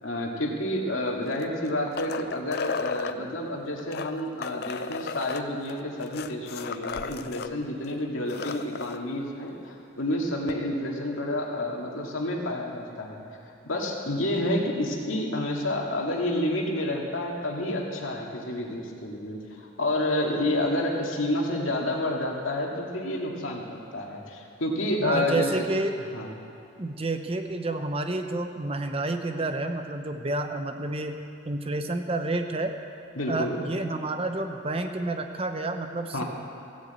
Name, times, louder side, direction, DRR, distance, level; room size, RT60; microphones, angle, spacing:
voice 1, 0.0-13.3 13.6-25.5 26.1-26.3 33.2-33.5 36.1-36.2, left 1 dB, 85° left, -1 dB, 2.1 m, -29 dB
sound 1, 1.2-3.2 3.8-7.5 7.8-7.9 8.2-9.0 10.5-10.6, left 5 dB, 50° left, 0.4 m, -34 dB
voice 2, 25.0-26.0 26.8-32.7 33.3-36.2, right 2 dB, 30° right, 6 dB, 0.8 m, -29 dB
16.0 x 8.1 x 8.2 m, 2.8 s
head